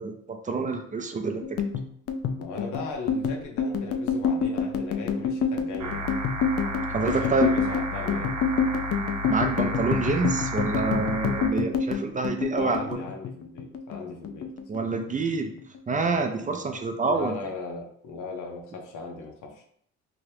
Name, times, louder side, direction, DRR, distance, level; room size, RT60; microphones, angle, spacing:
voice 1, 0.0-1.4 6.9-7.5 9.3-13.0 14.7-15.5 15.9-17.4, right 3 dB, 25° right, 5 dB, 0.4 m, -27 dB
sound 1, 1.4-14.0 14.2-15.3 15.6-15.9 16.2-16.9, left 5 dB, 50° left, 0.4 m, -27 dB
voice 2, 2.4-6.1 7.0-8.3 12.5-14.5 17.1-19.6, left 4 dB, 80° left, 1 dB, 0.8 m, -38 dB
sound 2, 5.8-11.5, equal, 65° right, 0.7 m, -32 dB
3.0 x 2.5 x 3.2 m, 0.65 s
cardioid pair, 90°, 30 cm